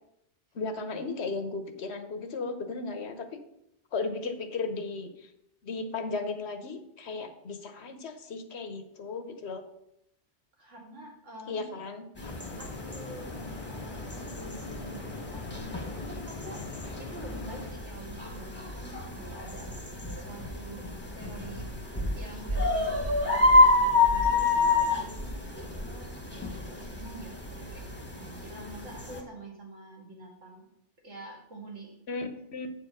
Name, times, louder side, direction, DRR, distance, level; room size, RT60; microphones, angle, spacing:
voice 1, 0.5-3.3 3.9-5.3 5.6-9.6 11.5-12.3 32.1-32.7, left 4 dB, 65° left, 8 dB, 1.2 m, -35 dB
voice 2, 10.6-11.8 12.6-16.6 17.0-19.7 20.2-20.9 21.1-21.7 22.1-26.1 26.7-27.3 27.7-27.9 28.1-30.6 31.0-32.0, right 1 dB, 85° right, -1 dB, 2.5 m, -46 dB
sound 1, 12.2-17.7, left 4 dB, 35° left, 0.6 m, -42 dB
sound 2, 12.2-29.2, left 2 dB, 10° left, 1.3 m, -29 dB
8.0 x 4.8 x 6.4 m, 0.78 s
omnidirectional pair, 1.2 m